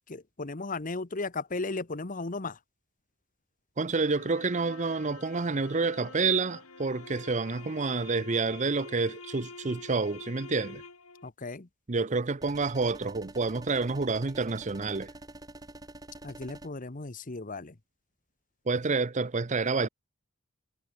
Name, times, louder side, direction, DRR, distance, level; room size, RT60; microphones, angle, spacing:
voice 1, 0.1-2.6 11.2-11.7 16.2-17.8, left 3 dB, 40° left, 1.0 m, -35 dB
voice 2, 3.8-10.8 11.9-15.1 18.7-19.9, right 4 dB, 35° right, 0.7 m, -28 dB
sound 1, 4.0-11.3, left 3 dB, 80° left, 4.9 m, -47 dB
sound 2, 12.4-16.7, right 1 dB, 15° right, 1.5 m, -47 dB
head